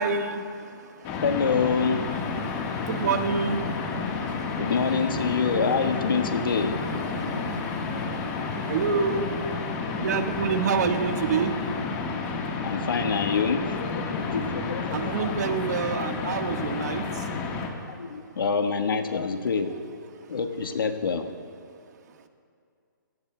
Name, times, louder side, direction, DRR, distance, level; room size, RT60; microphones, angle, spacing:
voice 1, 0.0-1.2 2.4-4.6 7.1-12.2 14.9-17.3, right 5 dB, 55° right, 5 dB, 1.4 m, -29 dB
voice 2, 1.0-2.1 4.6-7.4 12.6-15.5 17.7-19.8 20.3-21.3, left 5 dB, 85° left, 6 dB, 1.4 m, -27 dB
sound 1, 1.0-17.7, left 4 dB, 25° left, 1.4 m, -31 dB
27.5 x 18.0 x 2.2 m, 2.3 s
hypercardioid pair, 160°, 11 cm